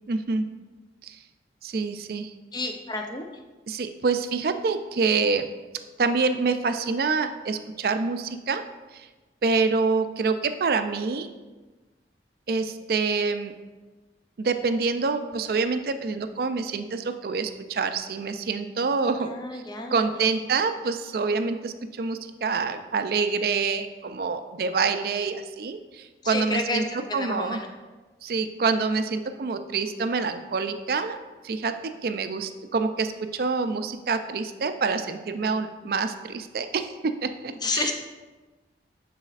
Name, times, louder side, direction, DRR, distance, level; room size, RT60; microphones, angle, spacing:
voice 1, 0.1-0.5 1.0-1.2 1.6-2.3 3.7-5.4 6.0-8.6 8.9-9.1 9.4-11.3 12.5-13.5 14.4-19.6 19.9-26.8 27.1-27.6 28.2-31.2 31.4-31.7 32.0-37.9, right 4 dB, 55° right, 9 dB, 0.4 m, -26 dB
voice 2, 2.5-3.3 19.2-20.1 26.2-27.7 37.6-37.9, left 2 dB, 25° left, 4 dB, 0.5 m, -30 dB
10.5 x 4.1 x 2.4 m, 1.3 s
head